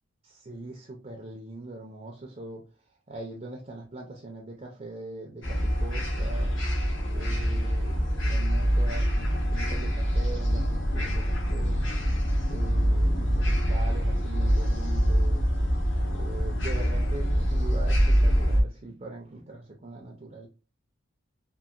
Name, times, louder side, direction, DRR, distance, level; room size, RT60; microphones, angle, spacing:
voice 1, 0.2-2.6 3.1-6.6 7.1-12.0 12.5-15.5 16.1-20.5, right 2 dB, 30° right, 0.4 m, -41 dB
sound 1, 5.4-18.6, equal, 60° left, 0.8 m, -25 dB
2.8 x 2.6 x 2.4 m
head